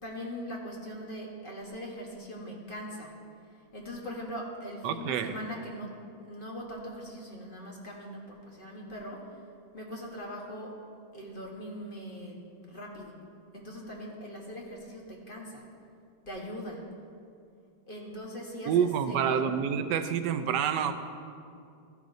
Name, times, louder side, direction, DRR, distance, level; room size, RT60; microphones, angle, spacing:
voice 1, 0.0-3.1 3.7-5.9 6.2-9.3 9.7-10.7 11.1-12.4 12.7-13.1 13.5-15.6 16.3-16.8 17.9-19.4, equal, 35° left, -2 dB, 1.2 m, -41 dB
voice 2, 4.8-5.4 18.7-20.9, right 8 dB, 85° right, 9 dB, 1.2 m, -27 dB
14.0 x 10.5 x 2.6 m, 2.4 s
omnidirectional pair, 1.9 m